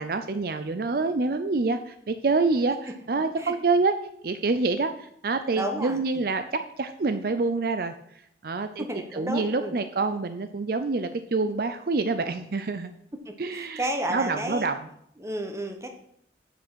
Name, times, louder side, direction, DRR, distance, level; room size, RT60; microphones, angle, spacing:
voice 1, 0.0-3.9 4.2-7.9 8.4-8.8 9.1-12.9 13.4-13.8 14.1-14.8, right 3 dB, 55° right, 9 dB, 0.5 m, -26 dB
voice 2, 5.5-6.0 8.8-9.7 13.2-14.7 15.2-15.9, right 1 dB, 15° right, 5 dB, 1.2 m, -32 dB
8.3 x 6.3 x 6.2 m, 0.71 s
head